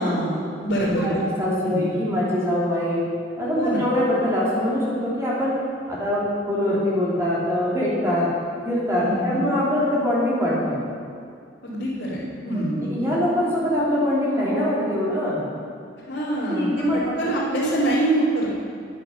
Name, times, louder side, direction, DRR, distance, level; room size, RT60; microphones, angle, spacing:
voice 1, 0.0-1.1 1.6-1.9 3.5-3.9 9.0-9.5 11.6-12.9 16.1-16.7 16.9-18.5, right 1 dB, 90° left, -11 dB, 3.0 m, -25 dB
voice 2, 0.9-3.0 3.4-5.6 5.9-8.3 8.6-10.8 12.5-15.4 16.5-17.1, left 1 dB, 15° right, -8 dB, 3.0 m, -23 dB
10.5 x 9.7 x 6.5 m, 2.3 s
head